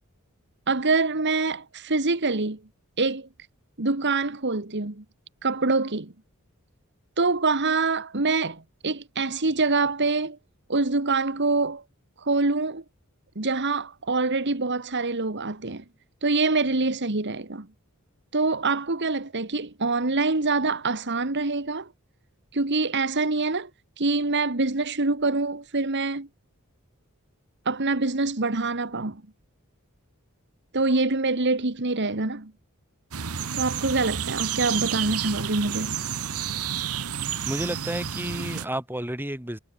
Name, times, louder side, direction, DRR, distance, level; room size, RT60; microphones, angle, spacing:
voice 1, 0.7-2.6 3.0-3.3 3.8-5.0 5.4-6.1 7.2-10.4 10.7-11.8 12.2-12.8 13.4-15.8 16.2-17.7 18.3-21.9 22.5-23.7 24.0-26.3 27.7-29.2 30.7-32.5 33.5-36.0, right 3 dB, 55° right, 1.8 m, -25 dB
sound 1, 33.1-38.7, right 8 dB, 90° right, 1.1 m, -30 dB
voice 2, 37.4-39.6, right 1 dB, 10° right, 4.7 m, -31 dB
head